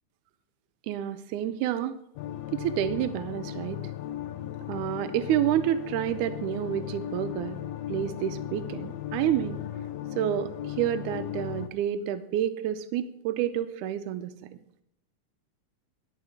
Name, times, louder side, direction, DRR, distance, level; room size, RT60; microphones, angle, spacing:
voice 1, 0.8-2.0 2.5-3.8 4.7-7.6 7.9-9.6 10.2-14.4, right 11 dB, 85° right, 10 dB, 2.1 m, -29 dB
sound 1, 2.2-11.7, left 12 dB, 80° left, 1.6 m, -36 dB
12.0 x 5.7 x 6.4 m, 0.74 s
omnidirectional pair, 3.6 m